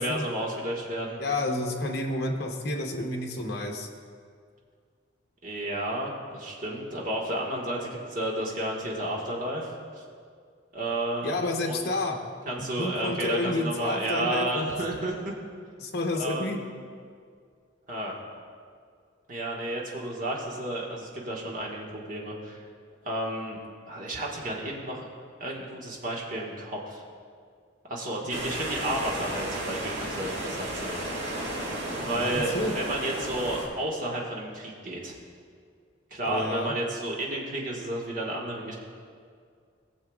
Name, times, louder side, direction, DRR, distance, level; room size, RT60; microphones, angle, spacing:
voice 1, 0.0-1.2 5.4-10.0 10.7-11.3 11.6-11.9 12.5-15.3 16.1-16.7 17.9-18.2 19.3-22.6 23.0-23.6 23.9-25.1 25.4-27.0 27.9-31.0 32.0-35.1 36.1-38.8, right 1 dB, 45° right, -3 dB, 1.5 m, -32 dB
voice 2, 1.2-3.9 11.2-12.2 12.6-14.7 15.8-16.6 28.2-28.4 32.1-32.7 36.2-36.7, left 2 dB, 55° left, 2 dB, 1.0 m, -30 dB
sound 1, 28.3-33.7, right 1 dB, 70° right, 1.9 m, -33 dB
19.5 x 7.0 x 2.4 m, 2.1 s
head